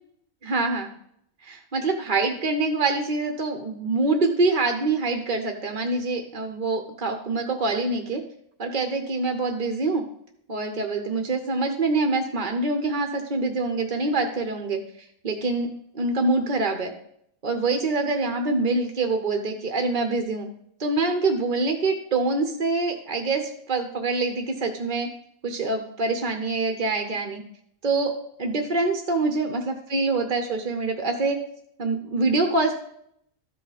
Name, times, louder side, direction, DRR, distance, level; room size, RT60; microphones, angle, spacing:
voice 1, 0.4-0.9 1.4-8.2 8.6-10.0 10.5-14.8 15.2-15.7 15.9-16.9 17.4-20.5 20.8-25.1 25.4-27.4 27.8-31.4 31.8-32.7, right 3 dB, 40° right, 5 dB, 0.9 m, -25 dB
13.0 x 5.3 x 4.1 m, 0.70 s
omnidirectional pair, 1.5 m